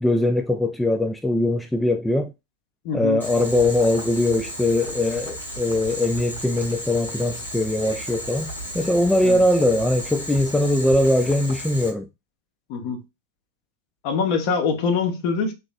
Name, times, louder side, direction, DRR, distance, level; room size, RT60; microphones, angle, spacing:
voice 1, 0.0-2.3 2.9-12.1, left 1 dB, 5° left, 0.3 m, -21 dB
voice 2, 2.8-3.2 9.2-9.4 12.7-13.0 14.0-15.5, left 5 dB, 45° left, 0.9 m, -24 dB
Boiling, 3.2-11.9, equal, 85° left, 2.1 m, -34 dB
3.6 x 3.0 x 2.3 m
figure-of-eight pair, 90°, 0 cm